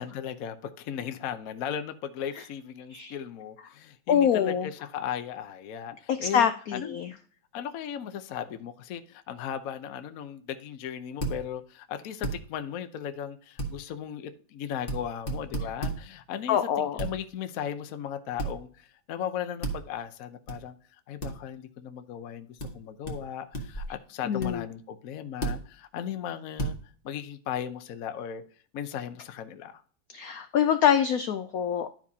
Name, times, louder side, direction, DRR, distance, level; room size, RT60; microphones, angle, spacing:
voice 1, 0.0-7.2 7.5-20.8 21.1-26.8 27.0-28.4 28.7-29.8, left 9 dB, 60° left, 1.0 m, -37 dB
voice 2, 4.1-4.7 6.1-7.1 16.5-17.0 24.3-24.6 30.1-31.9, left 8 dB, 85° left, 0.7 m, -25 dB
sound 1, 11.2-11.4 12.2-12.4 13.6-13.7 14.9-15.0 15.3-16.0 17.0-17.1 18.4-18.6 19.6-19.8 20.5-20.6 21.2-21.3 22.6-22.7 23.1-23.2 23.5-23.9 24.4-24.5 25.4-25.6 26.6-26.8, right 2 dB, 30° left, 1.5 m, -31 dB
12.0 x 4.9 x 2.8 m
omnidirectional pair, 2.1 m